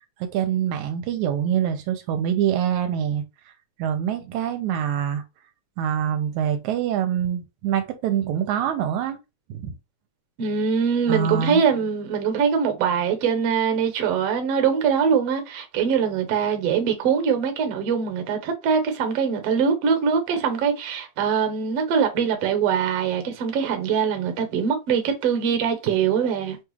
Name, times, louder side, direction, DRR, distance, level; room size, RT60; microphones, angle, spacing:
voice 1, 0.2-3.2 3.8-5.2 5.8-9.2 9.5-9.7 11.1-11.6, right 9 dB, 85° right, 2.0 m, -25 dB
voice 2, 10.4-26.6, right 6 dB, 65° right, 1.8 m, -23 dB
6.0 x 2.3 x 3.1 m
omnidirectional pair, 3.4 m